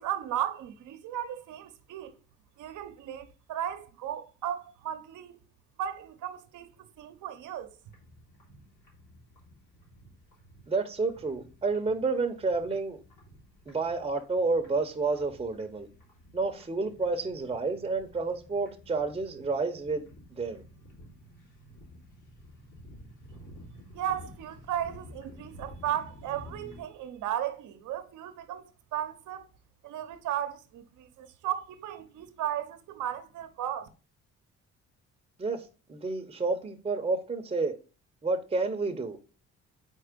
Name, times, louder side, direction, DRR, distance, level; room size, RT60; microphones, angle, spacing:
voice 1, 0.0-2.2 2.6-5.4 5.8-7.7 23.9-29.5 29.8-33.9, right 11 dB, 80° right, 0.8 m, -35 dB
sound 1, 7.8-26.8, equal, 90° left, 3.2 m, -52 dB
voice 2, 10.7-13.0 13.7-15.9 16.3-20.0 20.3-20.6 35.4-37.7 38.2-39.2, right 3 dB, 20° right, 0.7 m, -30 dB
4.5 x 4.3 x 5.0 m
cardioid pair, 90°, 30 cm